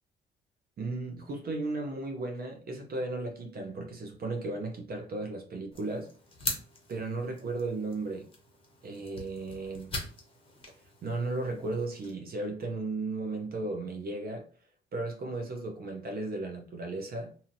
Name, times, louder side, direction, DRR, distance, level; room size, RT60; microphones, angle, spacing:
voice 1, 0.8-6.1 6.9-8.3 8.8-10.0 11.0-14.5 14.9-17.4, right 2 dB, 50° right, 0.7 m, -35 dB
sound 1, 5.7-12.1, left 2 dB, 25° left, 1.0 m, -42 dB
2.7 x 2.7 x 2.6 m
cardioid pair, 90°, 20 cm